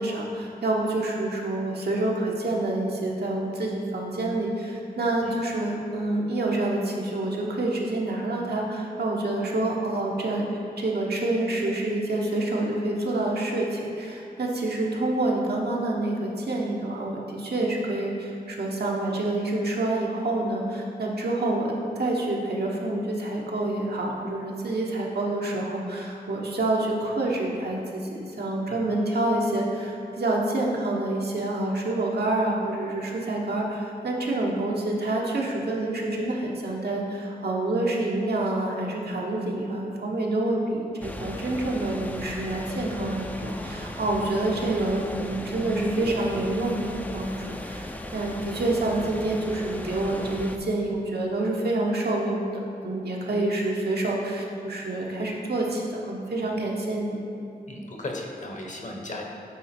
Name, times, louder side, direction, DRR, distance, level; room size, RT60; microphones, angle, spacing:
voice 1, 0.0-10.4 10.8-57.2, right 2 dB, 80° right, -2 dB, 1.1 m, -27 dB
sound 1, 41.0-50.6, left 1 dB, 10° left, 0.4 m, -37 dB
voice 2, 57.7-59.2, left 1 dB, 50° left, 0 dB, 1.0 m, -36 dB
9.0 x 4.0 x 4.4 m, 2.7 s
wide cardioid pair, 100°, 16 cm